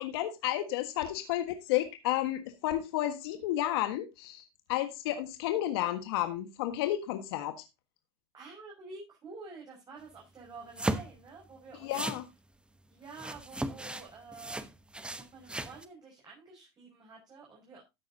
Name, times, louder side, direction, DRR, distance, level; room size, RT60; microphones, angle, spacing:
voice 1, 0.0-7.6 11.8-12.2, left 13 dB, 70° left, 7 dB, 1.5 m, -32 dB
voice 2, 8.3-12.0 12.9-17.8, right 4 dB, 30° right, -2 dB, 5.9 m, -49 dB
sound 1, 10.8-11.3 11.9-12.2 13.1-14.1 14.3-15.9, right 2 dB, 5° right, 1.0 m, -36 dB
13.5 x 9.3 x 2.8 m, 0.23 s
hypercardioid pair, 95°, 13 cm